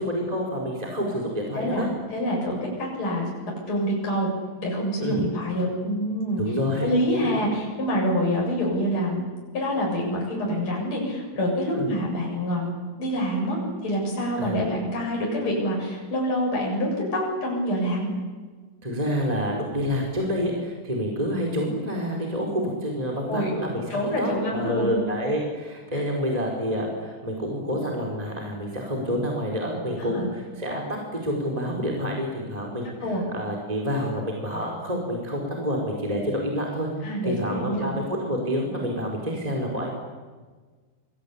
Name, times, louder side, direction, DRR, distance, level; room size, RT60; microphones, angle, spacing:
voice 1, 0.0-1.9 5.0-5.3 6.4-6.9 7.2-7.3 11.7-11.9 14.4-14.6 18.8-30.8 31.2-36.9 37.2-39.9, equal, 10° right, -1 dB, 4.2 m, -28 dB
voice 2, 2.1-3.3 3.7-4.3 4.6-6.4 6.8-9.3 9.5-12.7 13.0-18.1 23.3-23.5 23.9-25.0 25.9-26.0 30.0-30.3 33.0-33.2 37.0-38.0, equal, 30° left, -2 dB, 8.4 m, -26 dB
29.0 x 22.5 x 8.6 m, 1.4 s
omnidirectional pair, 4.7 m